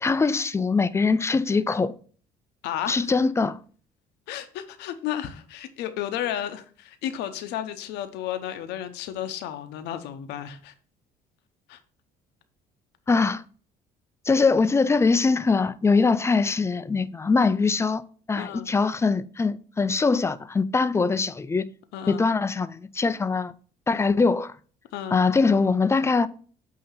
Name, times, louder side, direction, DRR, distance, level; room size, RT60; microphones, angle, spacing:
voice 1, 0.0-1.9 2.9-3.6 13.1-13.4 14.3-18.0 18.3-21.7 22.1-23.5 23.9-24.5 25.1-26.3, left 4 dB, 15° left, 0.4 m, -22 dB
voice 2, 2.6-3.1 4.3-10.7 11.7-11.8 18.3-18.7 21.9-22.3 24.9-25.2, left 11 dB, 90° left, 0.8 m, -33 dB
8.4 x 2.8 x 5.6 m
cardioid pair, 110°, 17 cm